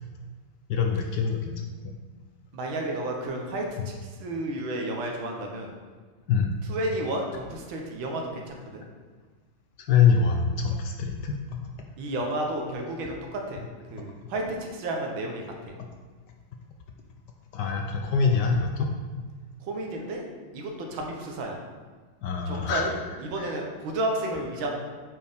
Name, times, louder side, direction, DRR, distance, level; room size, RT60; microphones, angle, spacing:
voice 1, 0.7-1.5 6.3-6.5 9.9-11.4 17.5-18.9 22.2-22.9, left 6 dB, 70° left, 2 dB, 1.1 m, -24 dB
voice 2, 2.5-3.8 4.2-5.7 6.6-8.8 12.0-13.6 13.9-15.7 19.6-20.3 20.5-21.6 22.5-24.8, right 1 dB, 75° right, 1 dB, 1.7 m, -32 dB
9.2 x 4.5 x 3.5 m, 1.4 s
omnidirectional pair, 2.2 m